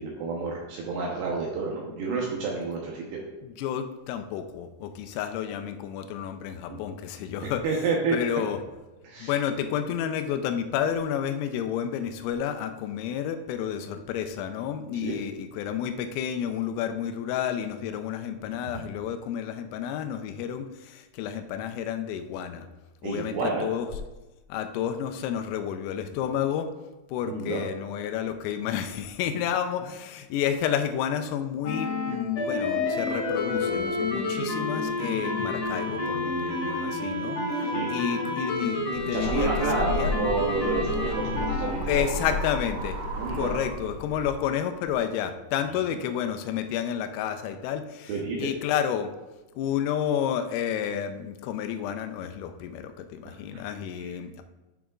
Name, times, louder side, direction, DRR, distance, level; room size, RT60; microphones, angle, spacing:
voice 1, 0.0-3.2 6.7-6.8 7.4-8.2 9.0-9.3 15.0-15.2 23.0-23.7 27.2-27.6 37.7-37.9 39.1-42.2 43.1-43.5 45.7-45.8 48.1-48.5 53.3-53.7, right 4 dB, 75° right, -2 dB, 2.5 m, -30 dB
voice 2, 3.4-7.6 8.1-8.6 9.2-22.7 23.0-23.9 24.5-26.7 27.1-37.4 37.9-39.5 39.8-40.1 41.9-43.0 43.3-48.1 48.4-49.1 49.6-54.4, left 9 dB, 85° left, 8 dB, 3.3 m, -30 dB
sound 1, 31.6-41.7, left 2 dB, 60° left, 1.8 m, -29 dB
sound 2, 38.9-44.3, left 1 dB, 60° right, 1.8 m, -32 dB
12.5 x 6.2 x 2.4 m, 1.1 s
omnidirectional pair, 5.9 m